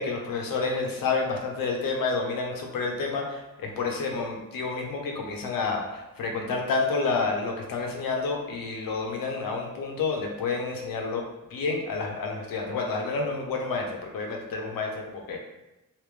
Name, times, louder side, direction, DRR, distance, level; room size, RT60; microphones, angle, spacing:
voice 1, 0.0-11.2 11.5-15.4, left 4 dB, 85° left, 1 dB, 0.8 m, -29 dB
3.3 x 2.9 x 3.2 m, 0.97 s
cardioid pair, 100°, 33 cm